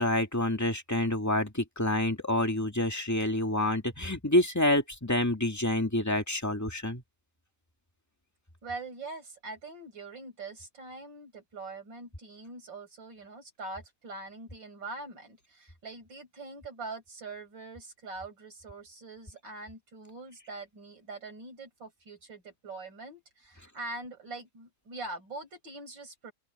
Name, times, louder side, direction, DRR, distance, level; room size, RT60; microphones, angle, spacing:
voice 1, 0.0-7.0, left 1 dB, 10° left, 2.1 m, -27 dB
voice 2, 8.6-26.3, right 3 dB, 85° right, 6.0 m, -43 dB
open air
omnidirectional pair, 1.9 m